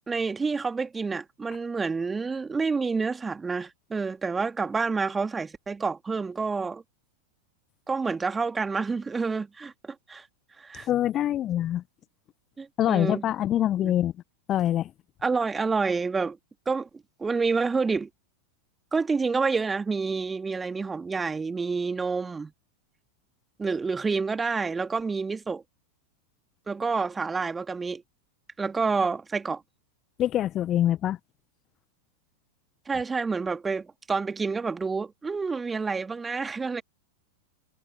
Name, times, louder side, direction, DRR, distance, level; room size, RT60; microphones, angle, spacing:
voice 1, 0.1-6.8 7.9-10.2 10.6-10.9 12.6-13.2 13.8-13.9 15.2-16.4 16.7-16.9 17.2-18.1 18.9-22.5 23.6-25.6 26.7-28.0 28.6-29.6 32.9-36.8, right 4 dB, 15° right, 2.4 m, -28 dB
voice 2, 10.7-11.8 12.8-14.1 14.5-14.9 30.2-31.2, left 12 dB, 30° left, 1.2 m, -25 dB
figure-of-eight pair, 90°, 0 cm